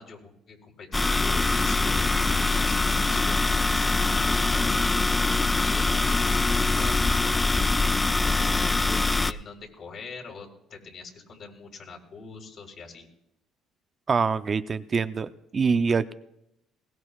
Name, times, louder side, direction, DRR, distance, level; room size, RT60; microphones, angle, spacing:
voice 1, 0.0-13.1, left 4 dB, 55° left, 1 dB, 3.9 m, -43 dB
sound 1, 0.9-9.3, left 3 dB, 15° left, 0.5 m, -23 dB
voice 2, 14.1-16.1, right 5 dB, 35° right, 12 dB, 0.5 m, -25 dB
21.0 x 18.0 x 2.4 m, 0.82 s
supercardioid pair, 85°, 0 cm